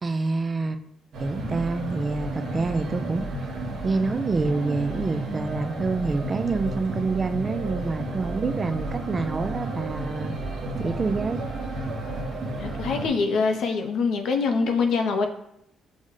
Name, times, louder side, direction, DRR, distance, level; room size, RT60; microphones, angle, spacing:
voice 1, 0.0-0.8 1.2-3.2 3.8-10.3 10.8-11.4, right 3 dB, 35° right, 10 dB, 0.3 m, -27 dB
sound 1, 1.1-13.1, right 2 dB, 65° right, 0.8 m, -32 dB
voice 2, 12.6-15.3, left 4 dB, 80° left, 5 dB, 0.5 m, -24 dB
6.1 x 2.1 x 3.7 m, 0.77 s
cardioid pair, 90°, 0 cm